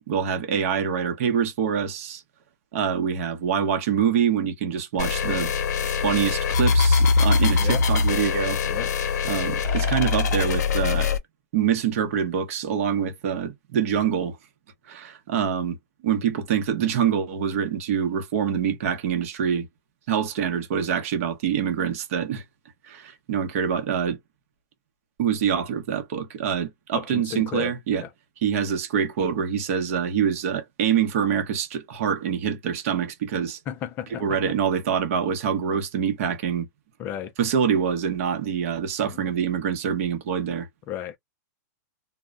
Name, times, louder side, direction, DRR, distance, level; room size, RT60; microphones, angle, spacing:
voice 1, 0.0-2.2 2.7-5.5 5.8-8.6 9.2-11.1 11.5-14.4 14.9-15.8 16.0-19.7 20.1-22.4 22.8-24.2 25.2-28.0 28.4-33.6 34.2-36.7 37.4-40.7, right 8 dB, 50° right, 0.8 m, -25 dB
sound 1, 5.0-11.2, left 4 dB, 70° left, 0.7 m, -22 dB
voice 2, 26.9-27.7 28.0-28.1 33.7-34.4 37.0-37.3 39.0-39.2 40.9-41.2, left 10 dB, 20° left, 0.4 m, -33 dB
2.2 x 2.1 x 3.5 m
hypercardioid pair, 155°, 10 cm